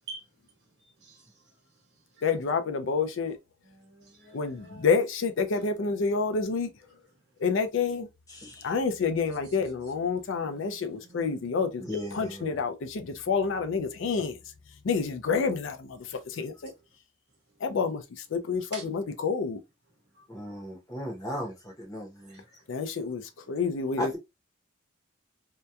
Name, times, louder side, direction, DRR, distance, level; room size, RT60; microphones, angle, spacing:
voice 1, 1.0-1.4 2.1-2.3 3.6-4.9 9.3-9.6 10.2-11.4 11.9-12.0 18.7-18.9 20.1-20.5 22.3-22.4, right 4 dB, 50° right, 1.1 m, -48 dB
voice 2, 2.2-3.4 4.3-6.7 7.4-8.1 8.6-11.8 12.1-14.4 14.8-16.7 17.6-18.0 18.3-19.6 22.7-23.2 23.5-24.1, left 5 dB, 65° left, 0.4 m, -28 dB
voice 3, 8.3-8.8 11.8-12.6 20.3-22.6 24.0-24.2, left 1 dB, 15° left, 0.7 m, -37 dB
2.8 x 2.2 x 2.2 m
head